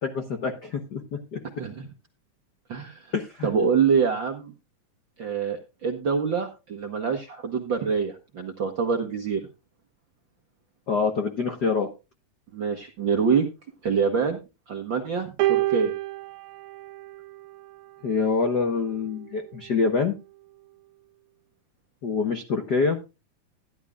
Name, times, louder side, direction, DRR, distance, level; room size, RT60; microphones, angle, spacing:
voice 1, 0.0-1.4 3.1-3.5 10.9-11.9 18.0-20.1 22.0-23.0, left 4 dB, 75° left, 5 dB, 0.9 m, -26 dB
voice 2, 1.6-1.9 2.7-3.1 3.4-4.5 5.2-9.4 12.5-13.5 13.8-14.4 14.7-15.9, right 6 dB, 60° right, 3 dB, 1.3 m, -25 dB
sound 1, 15.4-17.9 18.9-19.1, right 18 dB, 85° right, 2.4 m, -28 dB
14.0 x 11.0 x 2.4 m, 0.27 s
omnidirectional pair, 3.8 m